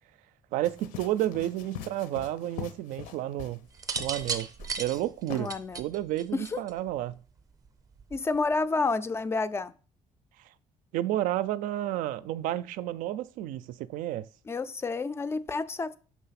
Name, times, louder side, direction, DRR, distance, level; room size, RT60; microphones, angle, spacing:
voice 1, 0.5-3.6 4.0-4.5 4.8-7.2 10.9-14.3, right 13 dB, 85° right, 0.4 m, -31 dB
sound 1, 0.6-3.7 3.9-4.3 4.6-5.0 5.3-5.4, left 9 dB, 80° left, 0.8 m, -42 dB
sound 2, 3.7-6.9 8.0-8.4, right 5 dB, 25° right, 0.6 m, -35 dB
voice 2, 5.4-5.8 6.3-6.6 8.1-9.7 14.5-16.0, left 3 dB, 20° left, 0.3 m, -29 dB
6.1 x 3.4 x 5.7 m
cardioid pair, 165°, 13 cm